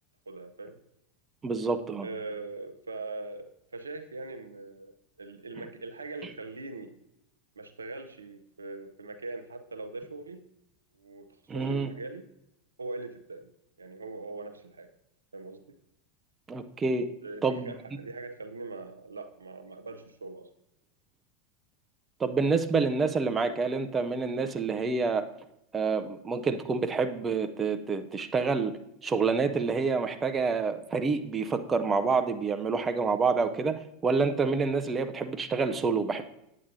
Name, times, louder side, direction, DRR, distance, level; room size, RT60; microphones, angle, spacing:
voice 1, 0.3-0.8 2.0-7.0 7.6-10.4 10.9-12.2 12.8-13.5 13.8-14.9 15.3-15.8 17.2-20.5, right 3 dB, 85° right, 8 dB, 0.6 m, -41 dB
voice 2, 1.4-2.1 11.5-11.9 16.5-17.1 17.4-17.7 22.2-25.2 25.7-28.7 29.0-36.2, right 4 dB, 25° right, 9 dB, 0.6 m, -27 dB
8.6 x 8.5 x 2.7 m, 0.83 s
hypercardioid pair, 90°, 0 cm